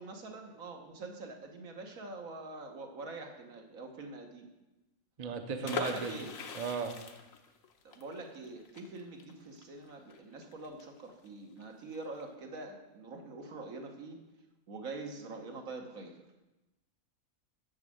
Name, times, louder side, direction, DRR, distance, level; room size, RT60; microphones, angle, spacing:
voice 1, 0.0-4.5 5.6-6.3 7.9-14.2 14.7-16.2, right 3 dB, 75° right, 3 dB, 1.6 m, -44 dB
voice 2, 5.2-6.2 6.5-6.9, right 5 dB, 35° right, 6 dB, 0.7 m, -36 dB
sound 1, 5.6-11.3 11.6-11.7 11.9-12.2, left 6 dB, 70° left, 1.3 m, -42 dB
7.2 x 6.3 x 7.7 m, 1.0 s
omnidirectional pair, 1.5 m